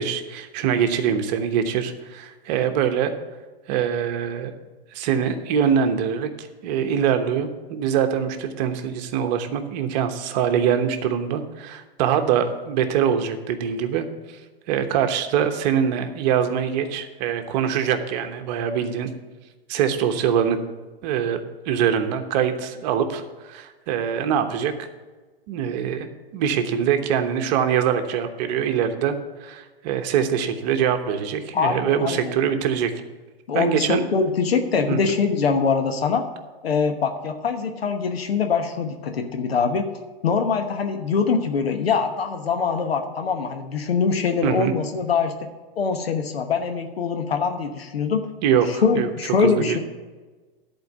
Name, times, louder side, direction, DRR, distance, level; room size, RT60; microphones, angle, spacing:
voice 1, 0.0-3.1 3.7-4.5 4.9-14.1 14.7-19.1 19.7-20.6 21.0-23.2 23.5-24.7 25.5-29.1 29.4-32.9 33.5-34.1 34.9-35.2 44.4-44.7 48.4-49.1 49.4-49.8, right 8 dB, 45° right, 7 dB, 1.1 m, -23 dB
voice 2, 31.5-32.3 33.5-36.2 36.6-39.9 40.2-45.3 45.7-48.2 48.7-49.8, left 5 dB, 90° left, 6 dB, 1.1 m, -23 dB
11.0 x 4.6 x 8.0 m, 1.3 s
hypercardioid pair, 125°, 30 cm